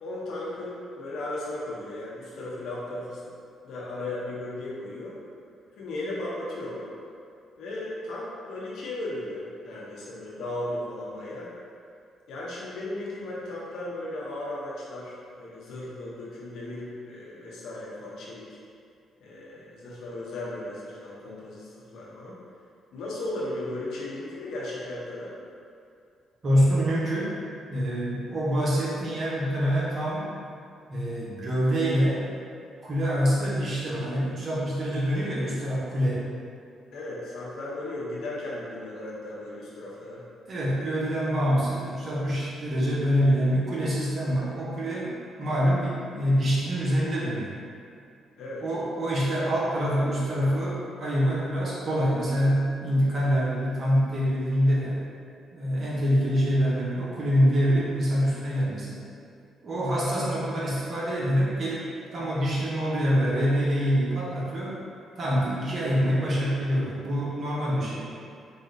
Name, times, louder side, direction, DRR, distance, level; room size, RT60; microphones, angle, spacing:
voice 1, 0.0-3.2 3.6-5.1 5.8-6.9 7.6-11.5 12.3-18.6 19.2-22.4 22.9-25.4 36.9-40.2 48.4-48.6, left 1 dB, 75° left, -6 dB, 0.9 m, -36 dB
voice 2, 26.4-27.3 27.7-30.3 30.9-32.2 32.8-36.2 40.5-45.1 45.4-47.5 48.6-55.0 55.5-59.0 59.6-61.8 62.1-64.8 65.2-68.1, equal, 45° right, -7 dB, 1.2 m, -25 dB
4.1 x 2.5 x 3.9 m, 2.4 s
cardioid pair, 90°, 0 cm